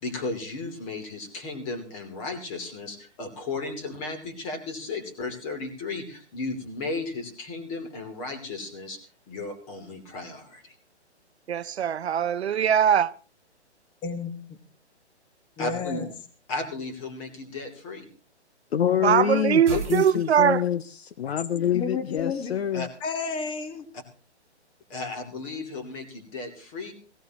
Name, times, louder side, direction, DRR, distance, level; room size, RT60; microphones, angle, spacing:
voice 1, 0.0-9.0 9.3-10.7 15.6-16.0 16.5-18.0 19.7-19.8 21.2-21.3 22.7-22.9 24.9-26.9, left 3 dB, 30° left, 2.9 m, -34 dB
voice 2, 11.5-13.1 19.0-20.6, right 9 dB, 65° right, 0.7 m, -21 dB
voice 3, 14.0-14.6 15.6-16.1 21.7-22.6 23.0-23.8, left 5 dB, 15° left, 1.3 m, -32 dB
voice 4, 18.7-22.9, left 10 dB, 60° left, 0.7 m, -26 dB
sound 1, 19.7-20.9, right 6 dB, 90° right, 1.2 m, -36 dB
18.5 x 16.5 x 3.0 m
hypercardioid pair, 150°, 34 cm